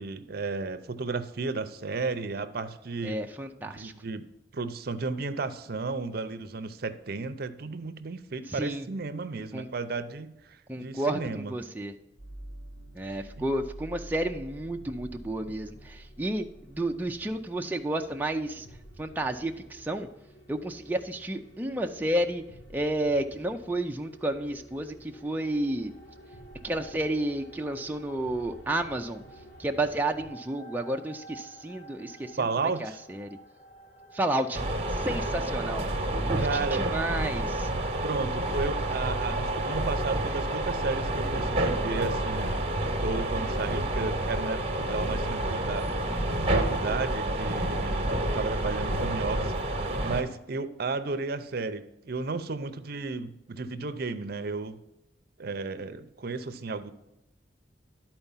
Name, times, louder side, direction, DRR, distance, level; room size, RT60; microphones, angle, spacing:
voice 1, 0.0-3.2 3.7-4.3 4.5-11.5 13.0-13.4 32.4-33.0 36.4-36.8 38.0-42.6 43.0-45.9 46.4-54.8 55.4-56.9, right 4 dB, 55° right, 11 dB, 0.6 m, -33 dB
voice 2, 3.0-3.9 8.5-8.9 9.5-9.7 10.7-11.9 12.9-18.7 19.0-20.1 20.5-22.4 22.7-25.9 26.6-29.2 29.6-32.4 32.8-33.3 34.1-34.6 34.9-35.9 36.3-37.7, right 1 dB, 10° right, 3 dB, 0.4 m, -31 dB
sound 1, 12.2-30.3, right 1 dB, 85° left, 1.9 m, -49 dB
sound 2, 25.1-43.4, right 2 dB, 45° left, 2.0 m, -52 dB
sound 3, 34.5-50.2, right 1 dB, 35° right, 1.0 m, -29 dB
11.5 x 4.4 x 5.6 m, 0.93 s
head